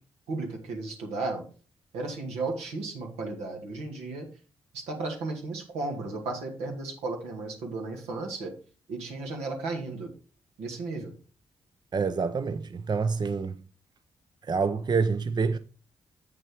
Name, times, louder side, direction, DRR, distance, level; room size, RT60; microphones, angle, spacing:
voice 1, 0.3-1.4 1.9-4.3 4.7-8.5 8.9-10.1 10.6-11.1, right 3 dB, 90° right, 2.0 m, -34 dB
voice 2, 11.9-13.6 14.5-15.6, right 5 dB, 40° right, 0.6 m, -27 dB
7.5 x 6.1 x 4.6 m
supercardioid pair, 50°, 11 cm